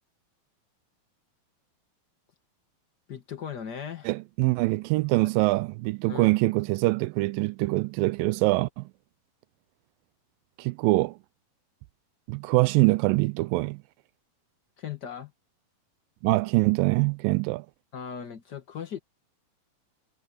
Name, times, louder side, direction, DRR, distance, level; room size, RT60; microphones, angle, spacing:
voice 1, 3.1-4.1 6.1-6.4 14.8-15.3 17.9-19.0, left 8 dB, 90° left, 0.9 m, -37 dB
voice 2, 4.1-8.8 10.6-11.2 12.3-13.8 16.2-17.7, right 22 dB, 80° right, 2.1 m, -24 dB
omnidirectional pair, 4.3 m